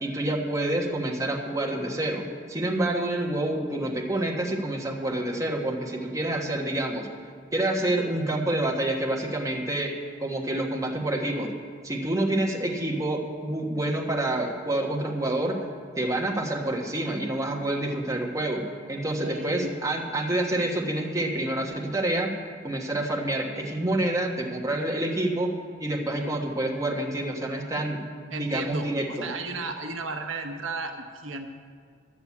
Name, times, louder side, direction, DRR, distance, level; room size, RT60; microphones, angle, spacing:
voice 1, 0.0-7.1 7.5-9.9 10.2-11.5 11.8-15.6 16.0-22.3 22.6-25.5 25.8-28.0 28.3-29.3, right 1 dB, 15° right, -2 dB, 1.3 m, -28 dB
voice 2, 19.1-19.7 28.3-31.5, right 3 dB, 75° right, 4 dB, 1.0 m, -34 dB
11.5 x 7.3 x 8.5 m, 2.1 s
head